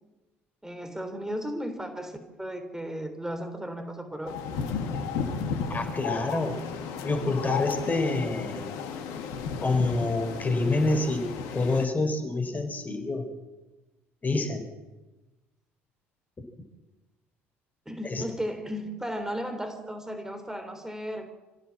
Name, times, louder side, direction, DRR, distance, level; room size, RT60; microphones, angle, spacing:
voice 1, 0.6-4.4 17.9-21.3, equal, 10° right, 6 dB, 3.6 m, -35 dB
sound 1, 4.3-11.9, left 6 dB, 60° left, 2.1 m, -34 dB
voice 2, 5.7-6.6 7.0-8.6 9.6-13.3 14.2-14.6 18.0-18.2, left 2 dB, 25° left, 7 dB, 4.3 m, -27 dB
26.5 x 15.0 x 7.5 m, 1.1 s
figure-of-eight pair, 55°, 7 cm